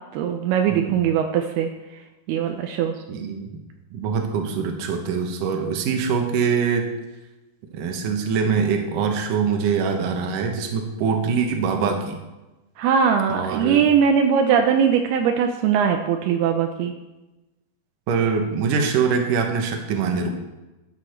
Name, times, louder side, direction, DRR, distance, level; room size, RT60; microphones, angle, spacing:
voice 1, 0.1-1.7 2.3-2.9 12.8-16.9, right 7 dB, 80° right, 4 dB, 2.6 m, -20 dB
voice 2, 0.7-1.0 3.1-3.5 3.9-6.9 7.7-12.2 13.3-13.8 18.1-20.3, right 6 dB, 65° right, 3 dB, 2.6 m, -23 dB
13.0 x 9.9 x 4.5 m, 1.1 s
omnidirectional pair, 4.7 m